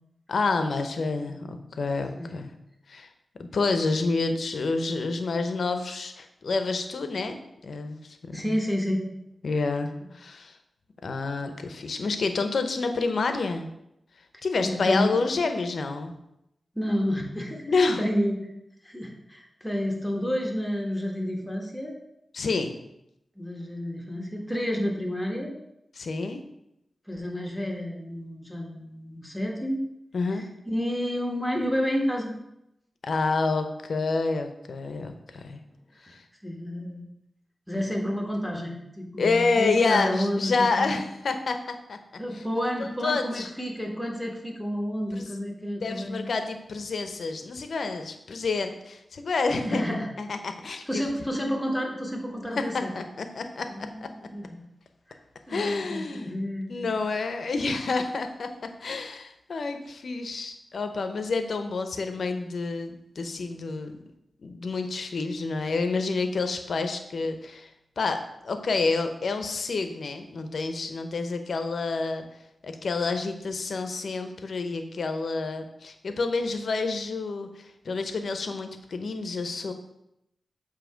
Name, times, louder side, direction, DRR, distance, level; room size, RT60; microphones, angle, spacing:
voice 1, 0.3-2.5 2.9-3.1 3.4-7.4 7.6-8.6 9.4-10.5 11.0-13.7 14.4-16.1 17.7-18.0 22.3-22.7 25.9-26.4 30.1-30.4 33.0-35.6 39.2-41.6 41.9-42.0 42.3-42.4 42.8-43.5 45.1-45.3 45.8-49.8 50.2-51.0 52.6-53.9 55.5-56.4 56.7-64.0 64.4-67.7 68.0-72.2 72.6-79.7, left 3 dB, 75° left, 7 dB, 0.7 m, -28 dB
voice 2, 1.3-1.6 2.2-2.4 8.3-9.1 14.6-15.2 16.7-17.6 18.0-18.4 18.8-22.0 23.3-25.5 27.1-29.8 30.7-32.3 36.0-36.2 36.4-37.0 37.7-41.0 42.2-46.3 49.6-50.1 50.9-52.9 53.6-54.6 55.5-57.0, equal, 10° left, 0 dB, 1.4 m, -30 dB
7.6 x 2.8 x 5.0 m, 0.83 s
cardioid pair, 50°, 0 cm